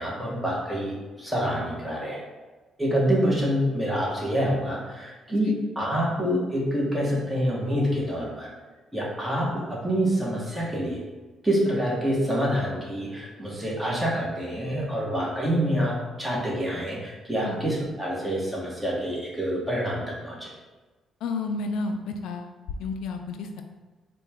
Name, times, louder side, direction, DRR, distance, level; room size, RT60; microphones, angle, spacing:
voice 1, 0.0-2.2 2.8-8.5 8.9-11.0 11.4-20.5, equal, 10° right, -5 dB, 1.2 m, -27 dB
voice 2, 21.2-22.5 22.8-23.6, left 3 dB, 85° left, 5 dB, 0.3 m, -31 dB
4.3 x 2.2 x 3.4 m, 1.3 s
cardioid pair, 90°, 0 cm